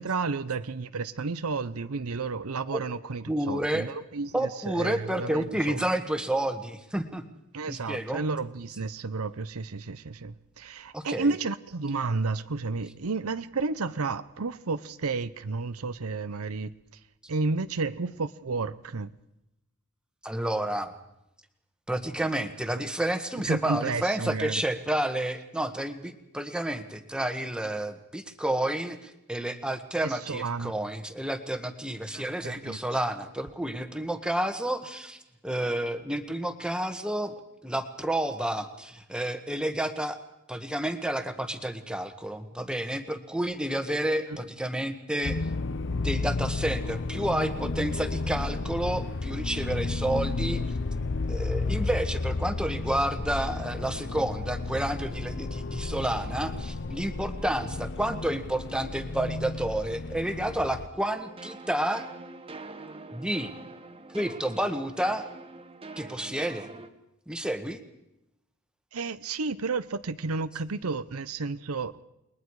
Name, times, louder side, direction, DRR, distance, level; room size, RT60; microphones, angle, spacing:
voice 1, 0.0-5.8 7.5-16.7 17.3-19.1 23.5-24.6 30.0-30.7 32.1-32.8 68.9-72.1, right 4 dB, 80° right, 0.8 m, -32 dB
voice 2, 3.3-3.9 4.3-7.2 7.7-8.2 10.9-11.3 20.2-20.9 21.9-35.2 35.4-37.3 37.6-40.2 40.5-45.4 45.9-50.6 51.3-62.1 63.1-63.5 64.1-65.3 66.0-66.7 67.3-67.8, right 1 dB, 5° right, 1.6 m, -30 dB
sound 1, 45.2-60.9, left 3 dB, 55° left, 0.7 m, -32 dB
sound 2, 61.1-66.9, right 3 dB, 25° right, 1.4 m, -44 dB
29.5 x 21.5 x 4.8 m
head